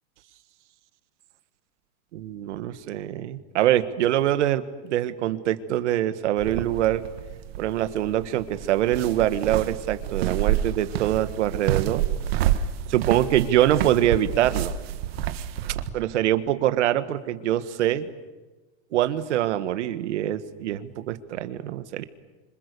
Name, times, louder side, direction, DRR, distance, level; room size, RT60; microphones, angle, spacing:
voice 1, 2.1-7.0 7.6-12.0 12.9-14.7 15.9-18.1 18.9-22.0, right 12 dB, 80° right, 11 dB, 1.8 m, -24 dB
sound 1, 6.4-15.9, right 11 dB, 60° right, 1.6 m, -29 dB
29.5 x 26.0 x 6.9 m, 1.2 s
supercardioid pair, 180°, 35 cm